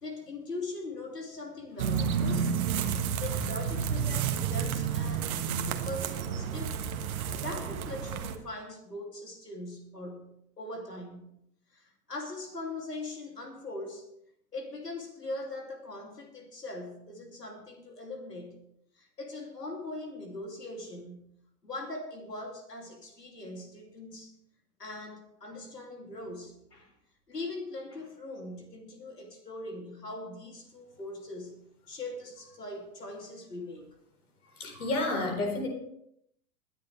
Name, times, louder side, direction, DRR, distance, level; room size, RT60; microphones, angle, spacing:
voice 1, 0.0-2.6 3.2-6.7 7.2-11.3 11.7-14.1 14.5-18.6 18.9-21.3 21.6-24.3 24.8-26.9 27.3-31.6 31.9-33.9, left 2 dB, 85° left, 3 dB, 2.9 m, -41 dB
sound 1, 1.8-8.3, right 7 dB, 65° right, 1.4 m, -30 dB
voice 2, 34.4-35.7, left 2 dB, 70° left, 2 dB, 4.4 m, -31 dB
21.0 x 10.0 x 3.3 m, 0.74 s
figure-of-eight pair, 95°, 47 cm